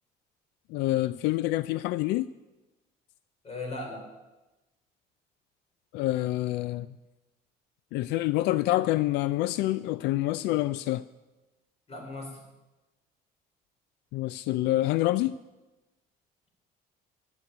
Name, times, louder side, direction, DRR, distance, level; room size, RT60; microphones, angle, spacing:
voice 1, 0.7-2.3 5.9-6.9 7.9-11.0 14.1-15.3, left 16 dB, 90° left, 16 dB, 0.4 m, -27 dB
voice 2, 3.4-4.1 11.9-12.4, left 2 dB, 35° left, 2 dB, 4.0 m, -37 dB
14.0 x 6.3 x 9.1 m, 1.1 s
cardioid pair, 110°, 17 cm